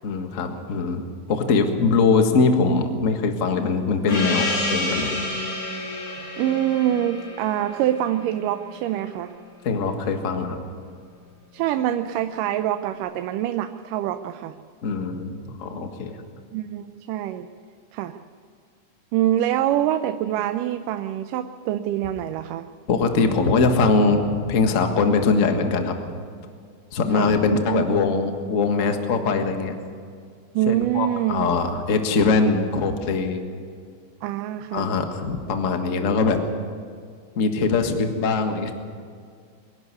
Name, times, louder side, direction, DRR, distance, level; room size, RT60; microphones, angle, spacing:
voice 1, 0.0-1.0 1.3-5.2 9.6-10.6 14.8-16.2 22.9-26.2 26.9-29.7 30.7-33.4 34.7-36.4 37.3-38.7, left 4 dB, 40° left, 5 dB, 1.2 m, -22 dB
Gong, 4.1-9.1, left 1 dB, 80° left, 6.0 m, -29 dB
voice 2, 6.4-9.3 11.5-14.5 16.5-17.5 17.9-18.2 19.1-22.7 27.1-27.9 30.5-31.5 34.2-34.9, right 12 dB, 90° right, 8 dB, 2.3 m, -25 dB
23.5 x 11.0 x 9.7 m, 2.2 s
omnidirectional pair, 3.7 m